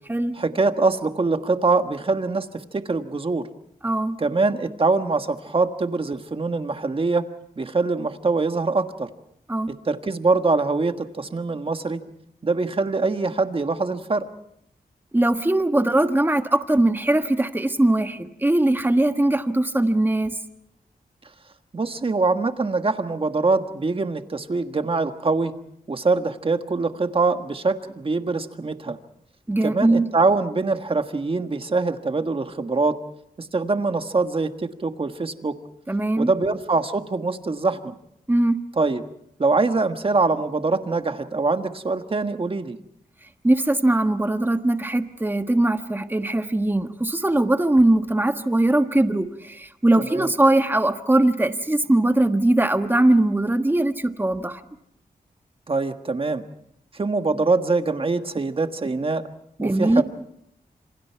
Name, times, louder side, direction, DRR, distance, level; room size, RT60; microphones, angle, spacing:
voice 1, 0.4-3.5 4.2-7.3 7.6-9.1 9.7-12.0 12.4-14.3 21.7-25.5 25.9-29.0 29.6-33.0 33.4-35.6 36.2-37.9 38.8-39.0 39.4-42.8 48.4-48.5 50.0-50.3 55.7-56.4 56.9-59.2 59.6-60.0, right 3 dB, 35° right, 7 dB, 1.5 m, -23 dB
voice 2, 3.8-4.2 9.5-9.7 15.1-20.3 29.5-30.1 35.9-36.3 38.3-38.6 43.4-54.6 59.6-60.0, right 1 dB, 15° right, 7 dB, 1.4 m, -20 dB
27.5 x 26.5 x 4.6 m, 0.74 s
wide cardioid pair, 110°, 16 cm